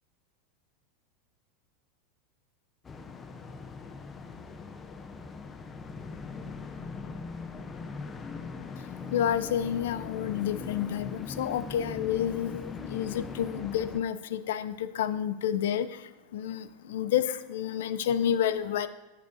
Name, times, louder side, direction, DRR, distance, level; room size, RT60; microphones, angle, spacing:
sound 1, 2.8-14.0, left 4 dB, 25° left, 0.7 m, -40 dB
voice 1, 9.1-16.0 16.3-18.9, left 9 dB, 75° left, 14 dB, 0.4 m, -29 dB
10.5 x 8.3 x 2.7 m, 1.1 s
hypercardioid pair, 100°, 0 cm